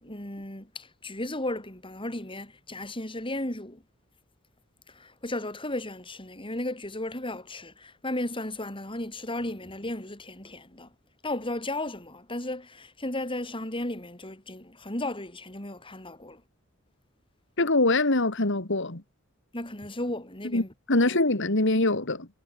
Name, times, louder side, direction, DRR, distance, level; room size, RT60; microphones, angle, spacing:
voice 1, 0.0-3.8 5.0-10.9 11.2-16.4 19.5-20.7 21.0-21.2, left 1 dB, 25° left, 6.7 m, -35 dB
voice 2, 17.6-19.0 20.4-22.3, left 2 dB, 60° left, 2.7 m, -24 dB
head